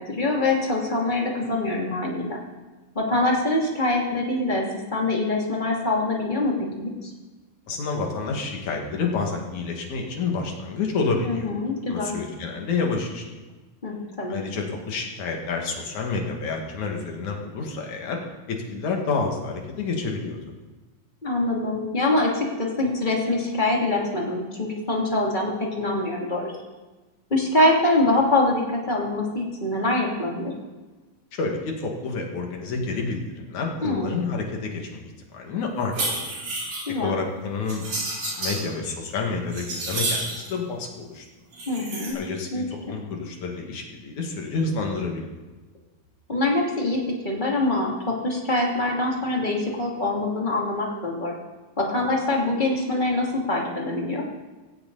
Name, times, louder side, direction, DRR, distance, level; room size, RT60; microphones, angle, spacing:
voice 1, 0.0-2.4 2.9-4.6 4.9-7.1 11.3-12.1 13.8-14.4 21.2-26.5 27.3-30.5 33.8-34.1 36.9-37.1 41.7-42.2 42.5-42.6 46.3-51.3 51.8-54.2, left 2 dB, 15° left, -2 dB, 2.4 m, -24 dB
voice 2, 7.7-11.5 11.9-13.2 14.3-18.2 18.5-20.4 31.4-35.9 37.0-37.8 38.1-41.2 42.1-45.3, left 4 dB, 55° left, 1 dB, 3.2 m, -29 dB
Browsing clothes clanking clothes hangers, 35.8-36.9 37.7-38.6 39.1-40.5 41.5-42.1, right 2 dB, 50° right, 5.8 m, -30 dB
18.5 x 16.5 x 4.2 m, 1.2 s
omnidirectional pair, 4.2 m